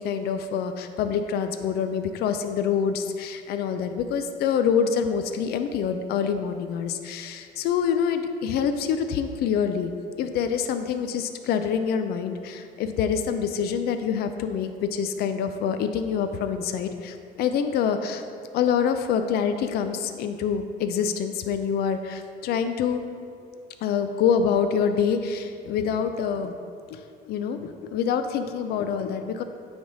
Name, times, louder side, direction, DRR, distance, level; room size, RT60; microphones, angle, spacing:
voice 1, 0.0-9.9 10.2-18.2 18.5-23.1 23.8-26.6 26.9-29.4, left 7 dB, 70° left, 8 dB, 0.4 m, -26 dB
9.4 x 3.5 x 3.9 m, 2.3 s
cardioid pair, 110°, 17 cm